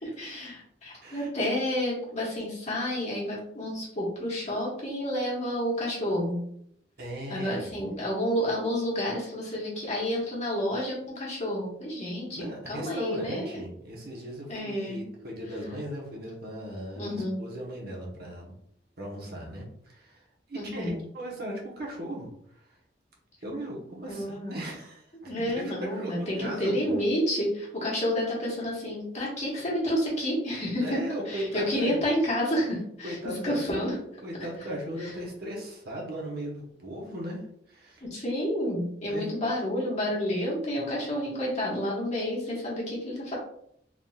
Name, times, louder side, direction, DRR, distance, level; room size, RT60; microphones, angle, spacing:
voice 1, 0.0-6.4 7.3-13.5 14.5-15.0 16.9-17.4 20.5-21.0 24.1-24.6 25.3-33.9 35.0-35.1 38.0-43.3, equal, 40° left, -5 dB, 1.5 m, -30 dB
voice 2, 7.0-7.8 12.3-18.5 19.0-20.2 20.5-22.3 22.6-22.7 23.4-26.9 30.8-32.0 33.0-37.4 37.7-38.0 39.1-39.3, equal, 60° right, -2 dB, 1.1 m, -37 dB
4.0 x 3.6 x 2.4 m, 0.70 s
head